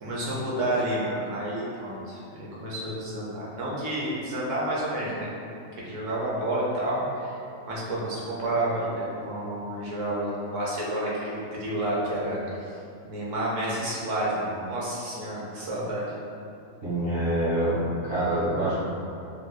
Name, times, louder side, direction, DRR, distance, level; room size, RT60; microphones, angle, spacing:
voice 1, 0.0-5.3 5.8-7.4 7.6-12.4 13.0-16.1, right 1 dB, 70° right, -6 dB, 1.0 m, -30 dB
voice 2, 16.8-18.8, right 1 dB, 30° right, -10 dB, 0.5 m, -26 dB
3.3 x 2.6 x 2.2 m, 2.6 s
omnidirectional pair, 1.4 m